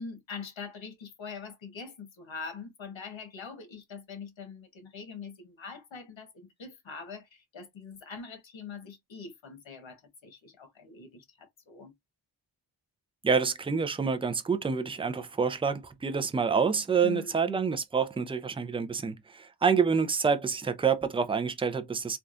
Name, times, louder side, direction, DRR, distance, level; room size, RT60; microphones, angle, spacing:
voice 1, 0.0-11.9 17.0-17.5, left 5 dB, 80° left, 1.2 m, -43 dB
voice 2, 13.2-22.2, right 5 dB, 15° right, 0.4 m, -27 dB
3.4 x 2.4 x 2.4 m
wide cardioid pair, 80°, 45 cm